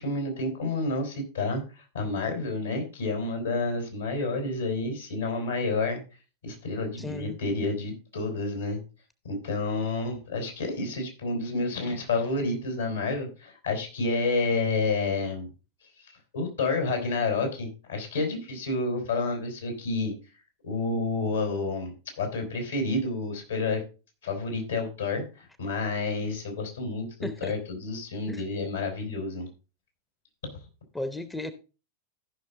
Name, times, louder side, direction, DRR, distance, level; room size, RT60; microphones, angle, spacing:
voice 1, 0.0-6.0 6.4-8.8 9.2-15.5 16.0-20.1 20.6-23.8 24.2-29.5 30.4-30.6, left 3 dB, 70° left, 4.0 m, -29 dB
voice 2, 7.0-7.4 27.2-27.5 28.3-28.4 30.9-31.5, left 2 dB, 10° left, 0.8 m, -34 dB
14.5 x 6.0 x 3.7 m
figure-of-eight pair, 90°, 0 cm